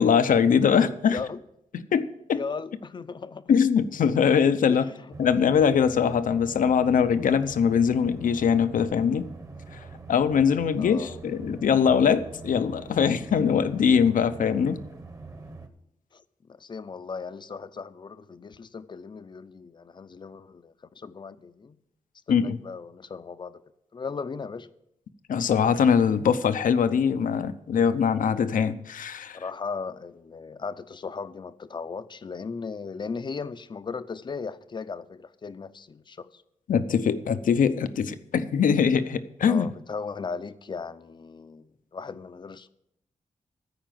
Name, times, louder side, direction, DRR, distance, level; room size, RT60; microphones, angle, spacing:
voice 1, 0.0-1.2 1.9-2.4 3.5-4.8 5.2-9.3 9.7-9.8 10.1-14.8 22.3-22.6 25.3-29.4 36.7-39.7, left 7 dB, 85° left, 0.7 m, -22 dB
voice 2, 0.7-1.4 2.3-3.5 4.7-5.2 10.8-11.2 16.1-16.2 16.5-21.8 22.3-23.6 23.9-24.7 29.3-36.4 39.5-42.7, left 5 dB, 35° left, 0.5 m, -37 dB
sound 1, 5.1-15.7, right 3 dB, 25° right, 1.0 m, -44 dB
14.0 x 5.1 x 7.6 m
wide cardioid pair, 125°, 14 cm